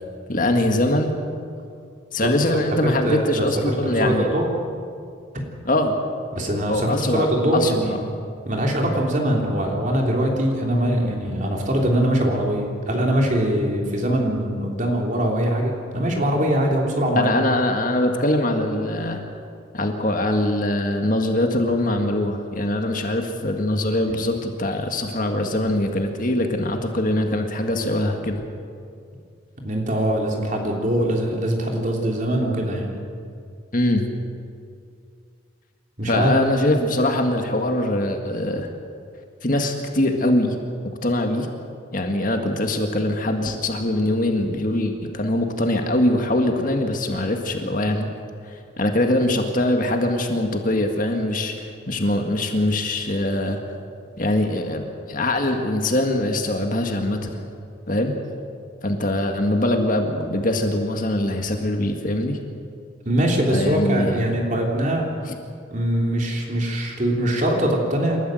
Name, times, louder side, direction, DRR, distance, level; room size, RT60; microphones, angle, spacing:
voice 1, 0.3-1.1 2.1-4.3 5.7-6.0 6.7-8.0 17.2-19.2 19.7-28.4 33.7-34.1 36.1-38.7 39.4-40.6 41.0-41.5 41.9-48.1 48.5-53.6 54.2-57.4 57.9-58.1 58.8-62.4 63.5-64.3, left 1 dB, 40° left, 4 dB, 1.8 m, -22 dB
voice 2, 2.2-3.7 4.0-4.5 6.3-8.0 8.4-17.3 29.6-32.9 36.0-36.4 63.0-65.1 65.7-68.2, right 1 dB, 40° right, 0 dB, 3.4 m, -22 dB
28.0 x 13.5 x 7.7 m, 2.3 s
head